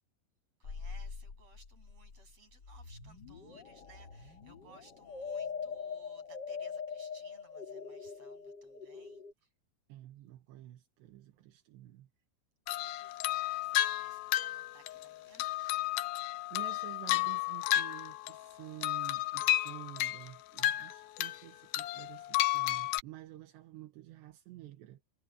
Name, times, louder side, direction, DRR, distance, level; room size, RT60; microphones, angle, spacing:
sound 1, 0.6-9.3, left 5 dB, 40° left, 1.5 m, -43 dB
voice 1, 0.6-9.2 12.7-15.9, right 4 dB, 35° right, 8.5 m, -62 dB
voice 2, 9.9-12.1 16.5-25.0, right 15 dB, 75° right, 3.3 m, -50 dB
sound 2, 12.7-18.5 18.8-21.4 21.7-23.0, left 14 dB, 80° left, 2.1 m, -32 dB
omnidirectional pair, 5.2 m